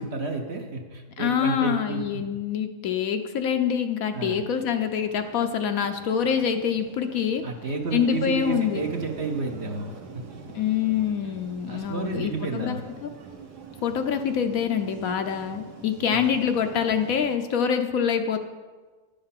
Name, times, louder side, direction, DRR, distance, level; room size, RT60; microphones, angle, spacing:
voice 1, 0.0-2.0 4.1-4.4 7.4-10.2 11.7-12.8 16.1-16.4, right 3 dB, 50° right, 3 dB, 1.0 m, -31 dB
voice 2, 1.2-7.4 7.9-8.8 10.5-12.8 13.0-13.1 13.8-18.4, left 8 dB, 65° left, 7 dB, 1.0 m, -25 dB
sound 1, 4.1-17.4, right 5 dB, 80° right, 1.7 m, -44 dB
10.5 x 6.7 x 5.7 m, 1.4 s
omnidirectional pair, 1.7 m